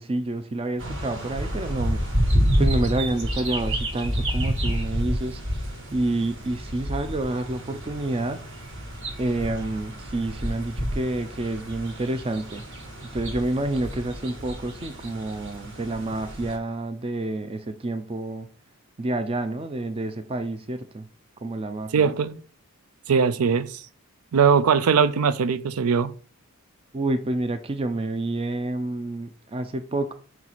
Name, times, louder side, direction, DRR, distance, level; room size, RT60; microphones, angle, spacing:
voice 1, 0.0-2.2 2.6-8.4 9.2-18.5 19.0-21.1 21.4-22.1 26.9-30.1, right 2 dB, 25° right, 0.4 m, -29 dB
sound 1, 0.8-16.6, equal, 55° right, 1.5 m, -29 dB
voice 2, 21.9-22.4 23.1-23.8 24.3-26.1, right 6 dB, 85° right, 0.5 m, -20 dB
5.6 x 4.5 x 4.1 m
head